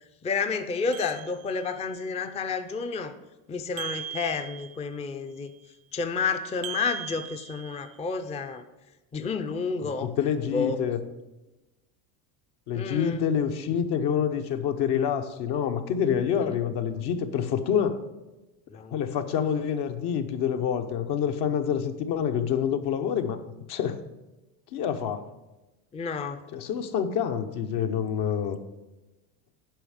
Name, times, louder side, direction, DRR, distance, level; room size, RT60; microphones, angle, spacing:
voice 1, 0.0-3.1 3.5-5.5 5.9-8.6 9.1-10.1 10.5-10.8 12.7-13.3 18.7-19.0 25.9-26.4, left 5 dB, 15° left, 8 dB, 0.4 m, -30 dB
sound 1, 0.9-1.9 3.8-5.0 6.6-8.1, right 11 dB, 55° right, 0.6 m, -40 dB
voice 2, 9.8-11.0 12.7-18.0 18.9-24.0 24.7-25.2 26.5-28.6, left 8 dB, 60° left, 7 dB, 0.9 m, -27 dB
9.1 x 5.6 x 5.0 m, 1.1 s
supercardioid pair, 95°, 45 cm